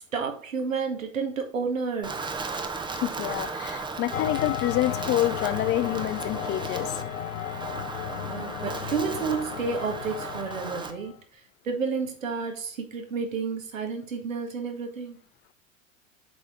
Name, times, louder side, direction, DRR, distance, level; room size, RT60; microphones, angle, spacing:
voice 1, 0.1-2.2 8.1-15.2, right 5 dB, 80° right, 2.0 m, -31 dB
Wind, 2.0-10.9, right 4 dB, 10° right, 0.8 m, -36 dB
voice 2, 3.0-6.9, left 14 dB, 30° left, 0.5 m, -27 dB
sound 1, 4.1-11.2, left 11 dB, 80° left, 0.6 m, -34 dB
7.7 x 4.8 x 3.8 m
hypercardioid pair, 90°, 39 cm